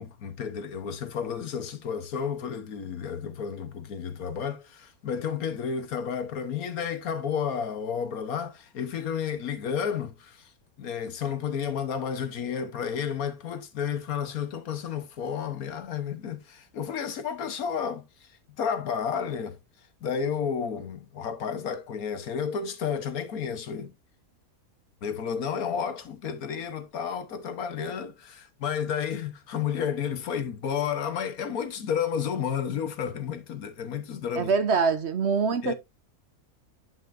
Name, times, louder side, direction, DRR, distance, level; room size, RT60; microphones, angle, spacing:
voice 1, 0.0-10.5 10.8-18.0 18.6-19.6 20.0-23.9 25.0-34.5 35.6-35.7, left 7 dB, 75° left, 1.6 m, -31 dB
voice 2, 34.4-35.7, right 5 dB, 55° right, 0.9 m, -24 dB
9.6 x 5.5 x 2.6 m
omnidirectional pair, 1.5 m